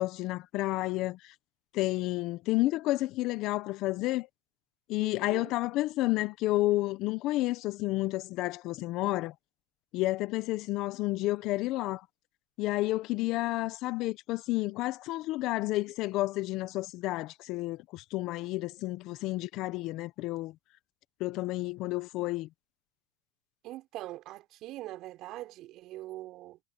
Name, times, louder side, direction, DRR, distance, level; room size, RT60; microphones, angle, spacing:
voice 1, 0.0-1.3 1.7-4.3 4.9-9.3 9.9-12.0 12.6-20.5 21.2-22.5, left 18 dB, 50° left, 1.2 m, -31 dB
voice 2, 5.0-5.5 23.6-26.6, right 16 dB, 45° right, 4.2 m, -43 dB
supercardioid pair, 115°, 0 cm